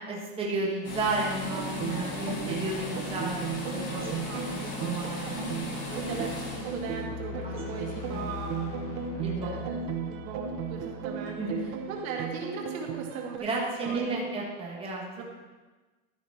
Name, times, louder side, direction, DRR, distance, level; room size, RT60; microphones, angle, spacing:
voice 1, 0.1-4.1 4.5-5.5 7.4-7.6 8.0-8.3 9.2-9.6 11.4-11.6 13.4-15.0, right 2 dB, 15° right, -4 dB, 1.8 m, -33 dB
sound 1, 0.8-7.0, left 2 dB, 35° left, 2.5 m, -36 dB
sound 2, 1.5-13.4, right 7 dB, 40° right, 0.8 m, -36 dB
voice 2, 4.0-4.7 5.9-8.7 9.4-13.5 13.8-14.2 15.2-15.3, right 5 dB, 70° right, 1 dB, 1.9 m, -39 dB
sound 3, 5.7-11.9, left 8 dB, 50° left, 1.2 m, -42 dB
13.5 x 5.6 x 4.4 m, 1.2 s
supercardioid pair, 155°, 42 cm